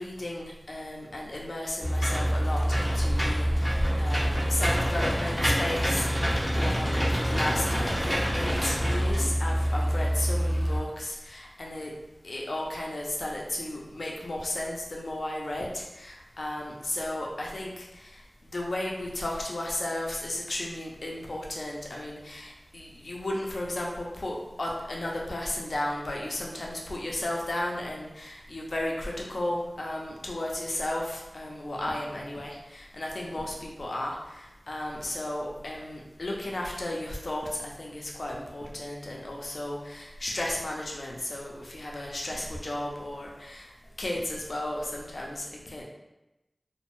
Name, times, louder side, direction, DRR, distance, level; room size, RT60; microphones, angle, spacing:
voice 1, 0.0-11.9 12.2-43.7 44.0-45.8, left 1 dB, 70° left, -2 dB, 0.5 m, -34 dB
Engine / Mechanisms, 1.8-10.8, equal, 5° left, 0.6 m, -26 dB
2.5 x 2.1 x 3.0 m, 0.95 s
wide cardioid pair, 60°, 0 cm